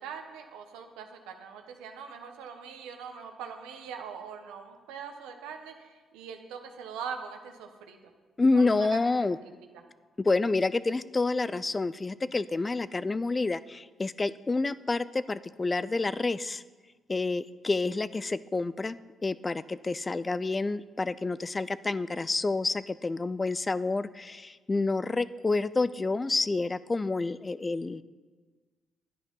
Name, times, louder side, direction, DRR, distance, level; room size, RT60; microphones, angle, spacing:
voice 1, 0.0-8.0 8.5-9.0 9.4-9.5, right 6 dB, 85° right, 5 dB, 1.1 m, -42 dB
voice 2, 8.4-9.4 10.2-16.6 17.1-19.0 19.2-28.0, left 3 dB, 30° left, 16 dB, 0.4 m, -28 dB
10.5 x 9.3 x 5.5 m, 1.4 s
supercardioid pair, 55°, 0 cm